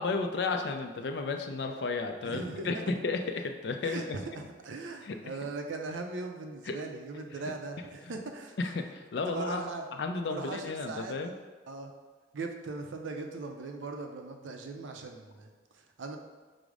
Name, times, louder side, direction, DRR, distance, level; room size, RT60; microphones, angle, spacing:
voice 1, 0.0-4.2 5.1-5.2 6.7-6.8 8.6-9.6 10.0-11.3, left 3 dB, 60° left, 5 dB, 0.4 m, -33 dB
voice 2, 2.2-2.9 3.8-8.6 9.3-9.9 10.3-11.4 11.7-11.9 12.3-16.2, right 3 dB, 85° right, 4 dB, 0.5 m, -39 dB
5.0 x 2.0 x 4.7 m, 1.4 s
head